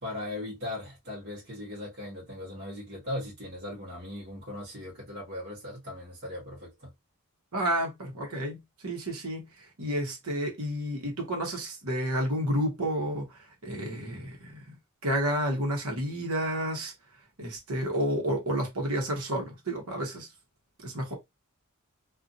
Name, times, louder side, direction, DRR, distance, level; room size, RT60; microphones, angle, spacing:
voice 1, 0.0-6.9, left 1 dB, 50° right, 1.3 m, -38 dB
voice 2, 7.5-9.4 9.8-13.2 13.6-14.6 15.0-16.9 17.4-20.3 20.8-21.1, equal, 80° right, 1.1 m, -30 dB
2.6 x 2.4 x 2.5 m
head